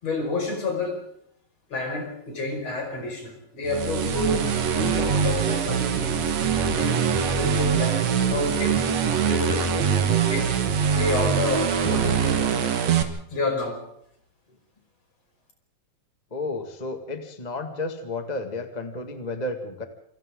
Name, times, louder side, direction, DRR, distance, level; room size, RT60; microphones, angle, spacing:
voice 1, 0.0-1.0 1.7-6.3 6.6-7.1 7.3-8.8 9.2-9.7 9.9-10.5 10.9-12.4 13.3-13.8, left 2 dB, 50° left, 2 dB, 6.4 m, -29 dB
sound 1, 3.7-13.0, right 7 dB, 55° right, 2.4 m, -23 dB
voice 2, 16.3-19.8, left 2 dB, 20° left, 5 dB, 1.2 m, -32 dB
28.0 x 26.5 x 3.8 m, 0.71 s
omnidirectional pair, 3.9 m